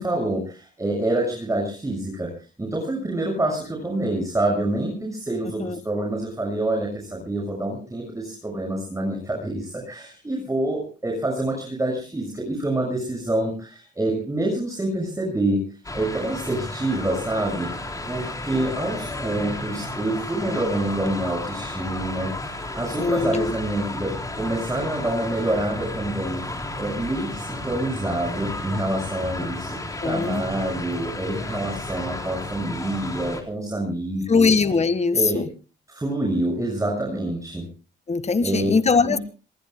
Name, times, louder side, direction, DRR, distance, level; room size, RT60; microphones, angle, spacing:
voice 1, 0.0-2.3 2.6-15.6 15.9-34.5 35.1-35.4 35.9-37.6 38.4-38.7, right 1 dB, 15° right, -1 dB, 6.5 m, -27 dB
voice 2, 5.4-5.8 23.0-23.5 30.0-30.4 34.3-35.5 38.1-39.2, left 4 dB, 35° left, 13 dB, 1.5 m, -21 dB
sound 1, 15.8-33.4, left 2 dB, 15° left, 3.8 m, -33 dB
27.0 x 20.5 x 2.2 m, 0.35 s
cardioid pair, 90°, 20 cm